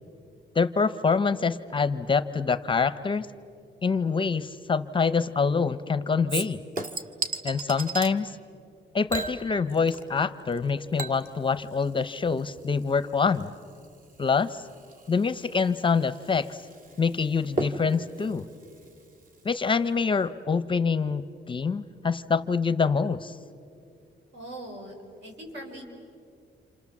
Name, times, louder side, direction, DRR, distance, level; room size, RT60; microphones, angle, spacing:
voice 1, 0.5-3.3 3.8-6.6 7.4-8.3 8.9-13.5 14.2-14.6 15.1-16.6 17.0-18.4 19.4-23.4, left 5 dB, 25° left, 13 dB, 0.6 m, -25 dB
Chink clink / Liquid, 6.3-8.1 9.1-10.2 10.5-19.5 19.9-20.0, right 3 dB, 45° right, 1.6 m, -37 dB
voice 2, 24.3-25.8, right 1 dB, 75° right, 1 dB, 5.6 m, -41 dB
29.0 x 28.0 x 7.2 m, 2.5 s
wide cardioid pair, 165°, 19 cm